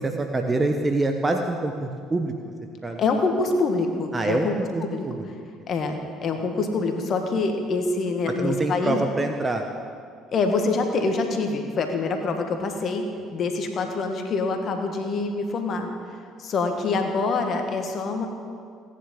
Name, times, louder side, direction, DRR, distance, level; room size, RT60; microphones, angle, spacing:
voice 1, 0.0-2.3 2.8-3.0 4.1-5.2 8.3-9.6, right 2 dB, 25° right, 4 dB, 1.1 m, -25 dB
voice 2, 3.0-4.5 4.8-5.1 5.7-9.0 10.3-13.0 13.3-15.9 16.4-18.3, left 3 dB, 50° left, 4 dB, 1.6 m, -25 dB
17.5 x 10.0 x 3.8 m, 2.2 s
hypercardioid pair, 60°, 0 cm